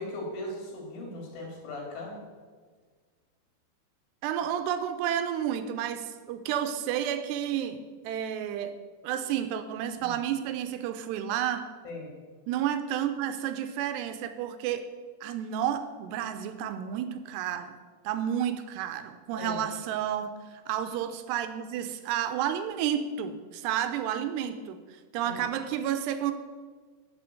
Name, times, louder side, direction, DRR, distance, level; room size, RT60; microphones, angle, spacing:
voice 1, 0.0-2.2 10.0-10.2 11.8-12.1 19.4-19.7 25.2-25.4, left 1 dB, 60° left, -1 dB, 3.6 m, -38 dB
voice 2, 4.2-8.8 9.0-11.7 12.5-14.9 15.2-17.8 18.0-24.8 25.1-26.3, right 10 dB, 80° right, 9 dB, 2.7 m, -31 dB
9.6 x 7.0 x 7.7 m, 1.5 s
omnidirectional pair, 5.0 m